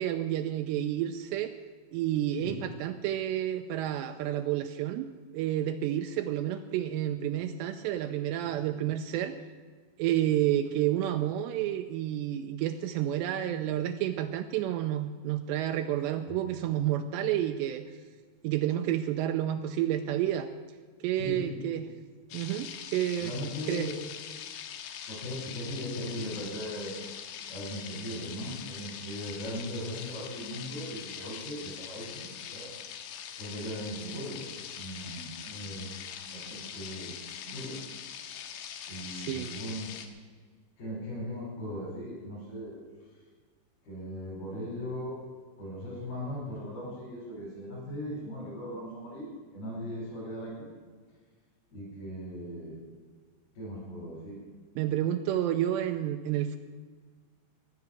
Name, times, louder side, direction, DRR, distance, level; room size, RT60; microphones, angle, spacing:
voice 1, 0.0-1.5 1.9-9.4 10.0-17.9 18.4-20.5 21.0-21.9 22.3-23.3 23.7-23.9 39.1-39.5 54.8-56.6, right 12 dB, 90° right, 6 dB, 2.5 m, -30 dB
voice 2, 2.4-2.7 16.3-16.4 21.1-21.7 23.2-24.0 25.1-27.0 27.5-32.7 33.4-34.5 34.7-35.9 36.2-37.1 37.4-37.8 38.9-39.9 40.8-42.8 43.8-45.1 45.6-50.7 51.7-52.8 53.5-54.4, equal, 50° left, -6 dB, 6.8 m, -38 dB
sound 1, 22.3-40.1, left 9 dB, 80° left, 3.5 m, -42 dB
15.5 x 11.0 x 7.3 m, 1.5 s
omnidirectional pair, 5.6 m